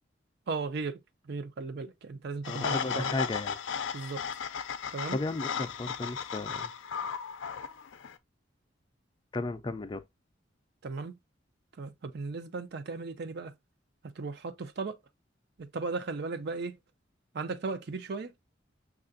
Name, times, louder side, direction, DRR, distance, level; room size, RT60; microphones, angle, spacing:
voice 1, 0.5-3.2 3.9-4.3 4.9-5.2 10.8-11.2 11.8-13.5 14.2-15.0 15.6-16.8 17.3-18.3, right 4 dB, 60° right, 0.5 m, -36 dB
sound 1, 2.4-8.1, left 7 dB, 90° left, 0.4 m, -35 dB
voice 2, 2.5-3.6 5.1-6.7 9.3-10.0, left 2 dB, 25° left, 0.4 m, -34 dB
6.5 x 2.4 x 2.5 m
head